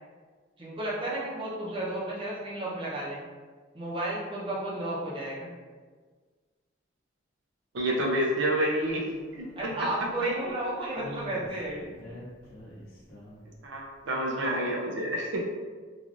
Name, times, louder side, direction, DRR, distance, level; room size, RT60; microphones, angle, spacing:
voice 1, 0.6-3.2 3.7-5.5 9.6-11.9, right 1 dB, 25° right, -6 dB, 0.6 m, -32 dB
voice 2, 7.7-9.0 9.3-9.5 13.6-15.5, right 1 dB, 75° right, -2 dB, 0.5 m, -28 dB
sound 1, 8.8-10.5 10.9-13.6, equal, 50° left, 0.7 m, -46 dB
3.2 x 2.4 x 2.5 m, 1.5 s
head